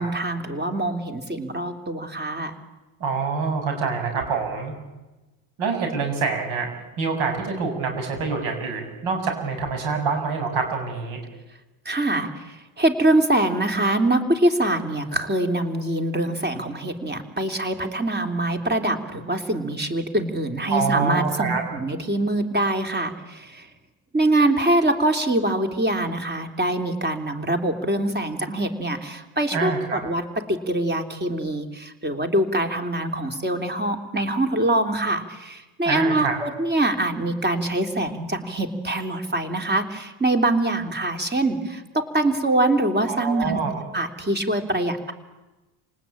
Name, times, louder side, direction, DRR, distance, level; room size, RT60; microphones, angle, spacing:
voice 1, 0.0-2.6 11.8-23.7 24.1-30.2 30.5-43.6 43.9-45.1, right 1 dB, 20° right, 6 dB, 3.3 m, -24 dB
voice 2, 3.0-4.7 5.6-6.7 7.0-11.2 20.7-21.6 29.5-30.0 35.8-36.4 43.1-43.8, right 5 dB, 75° right, 5 dB, 7.8 m, -26 dB
28.0 x 19.0 x 8.9 m, 1.1 s
cardioid pair, 105°, 47 cm